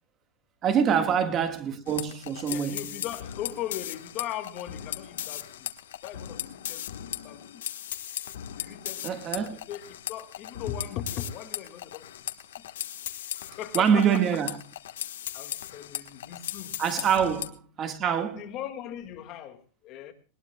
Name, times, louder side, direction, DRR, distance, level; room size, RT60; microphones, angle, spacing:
voice 1, 0.6-2.8 9.0-9.6 13.7-14.6 16.8-17.5 17.8-18.5, right 7 dB, 25° right, 1.6 m, -25 dB
sound 1, 1.9-17.5, left 11 dB, 90° left, 1.3 m, -38 dB
voice 2, 2.5-5.7 6.0-7.6 8.6-12.0 13.4-14.2 15.3-16.8 17.1-17.3 18.3-20.1, left 10 dB, 35° left, 2.0 m, -39 dB
20.0 x 20.0 x 2.3 m
supercardioid pair, 155°, 0 cm